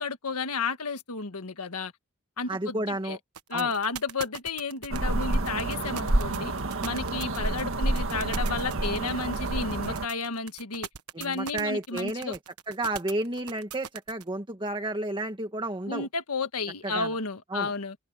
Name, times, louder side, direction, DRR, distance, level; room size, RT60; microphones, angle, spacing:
voice 1, 0.0-1.9 2.4-3.2 3.5-6.5 6.8-10.9 11.2-12.3 15.9-18.0, left 4 dB, 80° left, 1.7 m, -32 dB
voice 2, 2.5-3.2 3.5-3.7 11.1-12.4 12.7-16.1 16.8-17.1 17.5-17.7, right 1 dB, 20° right, 1.8 m, -31 dB
sound 1, 3.3-14.2, right 8 dB, 90° right, 1.2 m, -40 dB
sound 2, 4.9-10.1, right 2 dB, 65° right, 1.8 m, -28 dB
head